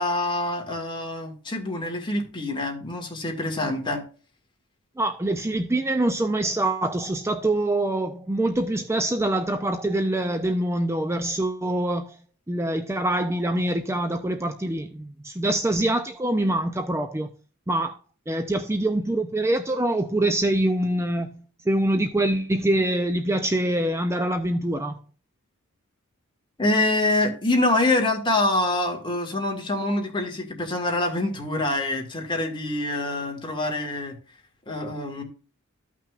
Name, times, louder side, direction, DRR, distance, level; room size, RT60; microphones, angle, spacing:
voice 1, 0.0-4.0 26.6-34.2 34.7-35.2, left 2 dB, 25° left, 2.0 m, -25 dB
voice 2, 5.0-12.2 12.5-17.3 17.7-18.0 18.3-25.0, right 1 dB, 15° right, 0.5 m, -25 dB
14.0 x 5.8 x 2.4 m
head